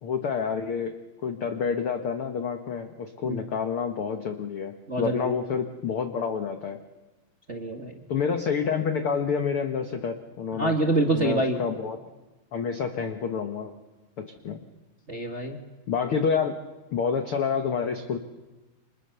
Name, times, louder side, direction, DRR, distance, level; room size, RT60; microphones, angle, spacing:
voice 1, 0.0-0.9 1.2-6.8 8.1-10.8 11.1-12.0 12.5-13.7 14.2-14.6 15.9-16.6 16.9-18.2, left 6 dB, 65° left, 7 dB, 1.3 m, -28 dB
voice 2, 4.9-5.3 7.5-7.9 10.6-11.6 15.1-15.6, right 2 dB, 30° right, 3 dB, 1.5 m, -26 dB
29.5 x 26.0 x 6.9 m, 1.1 s
omnidirectional pair, 4.3 m